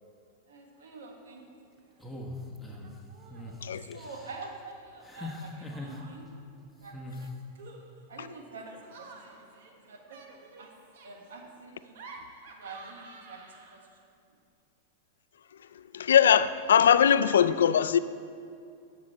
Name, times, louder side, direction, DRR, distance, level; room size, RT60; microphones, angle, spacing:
voice 1, 0.5-1.7 3.5-6.2 6.8-7.0 8.1-10.7 11.0-12.0 12.5-13.4 13.7-14.1, right 3 dB, 90° right, 1.4 m, -47 dB
Laughter, 1.0-1.4 1.7-2.3 2.7-3.6 4.9-6.4 7.1-14.0, right 3 dB, 70° right, 1.1 m, -52 dB
sound 1, 2.0-2.9 3.3-3.6 3.9-4.4 5.0-6.0 6.9-7.3, left 1 dB, ahead, 1.2 m, -41 dB
voice 2, 3.6-4.0 8.2-8.3 15.7-18.0, left 8 dB, 90° left, 0.3 m, -22 dB
11.0 x 6.5 x 4.4 m
hypercardioid pair, 120°, 0 cm